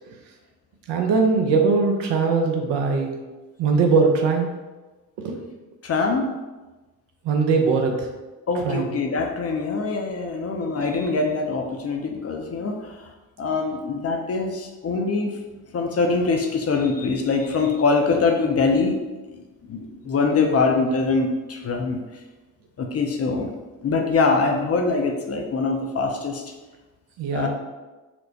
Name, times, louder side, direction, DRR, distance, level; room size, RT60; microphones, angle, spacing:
voice 1, 0.9-3.2 3.6-4.5 5.2-5.4 7.2-8.1 8.6-8.9 27.2-27.5, right 4 dB, 65° right, 2 dB, 0.7 m, -20 dB
voice 2, 5.8-6.3 8.5-13.1 13.4-15.4 15.7-19.0 19.3-22.0 22.8-23.6 23.8-26.4 27.3-27.5, left 4 dB, 35° left, 3 dB, 0.5 m, -23 dB
4.3 x 2.0 x 2.7 m, 1.2 s
hypercardioid pair, 45°, 45 cm